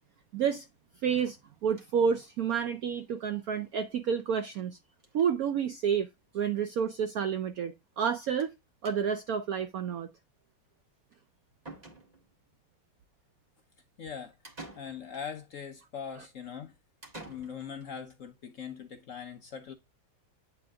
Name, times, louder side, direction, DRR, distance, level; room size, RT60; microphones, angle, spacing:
voice 1, 0.3-0.7 1.0-1.4 1.6-4.8 5.1-6.1 6.3-8.5 8.8-10.1, right 7 dB, 75° right, 0.8 m, -29 dB
sound 1, 1.1-2.1 2.5-2.6 2.9-3.0 3.2-3.3 4.5-4.7 5.0-5.3 6.2-6.3 6.6-6.7 8.4-8.6 8.8-9.3 11.1-11.2 11.6-12.4 14.4-15.3 17.0-17.9, right 2 dB, 20° right, 1.7 m, -50 dB
voice 2, 14.0-14.3 14.8-16.7 17.3-19.7, left 7 dB, 60° left, 0.9 m, -41 dB
8.5 x 3.8 x 3.4 m
omnidirectional pair, 2.1 m